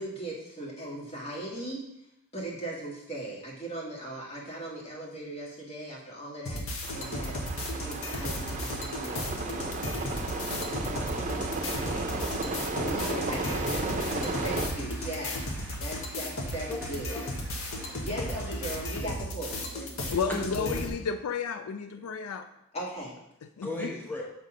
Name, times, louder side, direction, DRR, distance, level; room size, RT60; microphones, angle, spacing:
voice 1, 0.0-1.9 2.3-7.4 7.8-10.0 10.3-12.1 12.8-15.5 15.8-17.3 18.0-19.6 22.7-23.1, right 1 dB, 30° left, -4 dB, 2.0 m, -39 dB
sound 1, 6.4-20.9, left 1 dB, 65° left, 1.1 m, -35 dB
sound 2, 6.8-14.7, right 2 dB, 35° right, 0.7 m, -34 dB
Cheering / Applause, 12.0-19.0, right 1 dB, 10° right, 1.9 m, -47 dB
voice 2, 17.5-18.3 19.6-20.9 22.0-22.1 23.6-24.2, left 2 dB, 10° left, -3 dB, 1.2 m, -37 dB
voice 3, 20.1-22.5 23.6-23.9, left 6 dB, 85° left, 9 dB, 0.4 m, -32 dB
7.1 x 4.2 x 5.0 m, 0.81 s
head